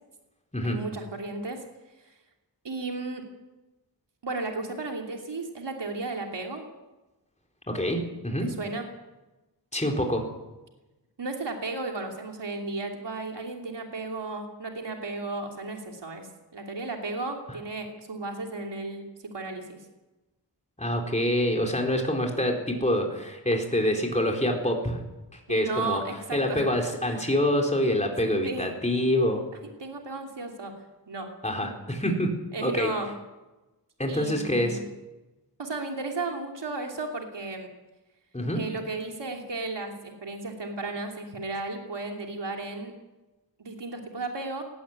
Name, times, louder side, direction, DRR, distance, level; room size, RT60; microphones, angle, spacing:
voice 1, 0.6-1.6 2.6-3.2 4.2-6.6 8.4-8.9 11.2-19.0 19.3-19.8 25.5-26.7 27.1-27.3 28.4-28.7 29.8-30.7 31.1-31.3 32.5-33.1 34.1-34.9 35.6-37.7 38.5-42.9 43.6-44.6, right 3 dB, 80° right, 2 dB, 2.9 m, -34 dB
voice 2, 7.7-8.5 9.7-10.2 20.8-25.0 25.3-26.0 26.3-29.4 31.4-32.4 32.6-32.9 34.0-34.8 38.3-38.6, left 1 dB, 15° left, 1 dB, 4.1 m, -26 dB
18.5 x 16.0 x 9.8 m, 1.1 s
wide cardioid pair, 85°, 41 cm